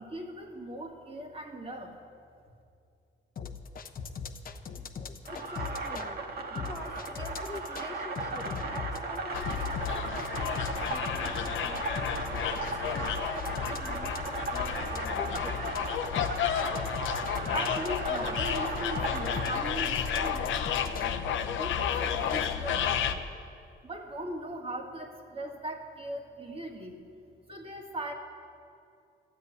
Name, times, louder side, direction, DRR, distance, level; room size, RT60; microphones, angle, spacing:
voice 1, 0.0-2.0 17.5-23.3 23.8-27.0 27.5-28.1, right 1 dB, 30° right, 2 dB, 1.9 m, -39 dB
sound 1, 3.4-6.1 6.6-7.9 8.2-21.1 21.7-22.6, left 6 dB, 45° left, 0.9 m, -39 dB
sound 2, 5.2-20.4, right 3 dB, 50° right, 1.4 m, -37 dB
voice 2, 5.3-6.2 6.5-15.7, left 2 dB, 15° left, 1 dB, 1.1 m, -46 dB
sound 3, 9.3-23.2, left 8 dB, 75° left, 0.8 m, -32 dB
13.0 x 8.1 x 9.7 m, 2.4 s
cardioid pair, 90°, 20 cm